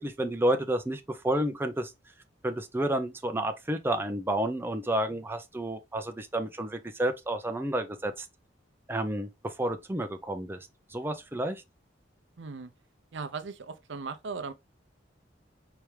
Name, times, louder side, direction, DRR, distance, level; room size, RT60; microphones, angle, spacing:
voice 1, 0.0-1.9 2.4-8.3 8.9-10.6 10.9-11.6, right 1 dB, 10° right, 0.6 m, -30 dB
voice 2, 12.4-12.7 13.1-14.5, right 4 dB, 70° right, 0.6 m, -38 dB
4.5 x 3.4 x 3.2 m
head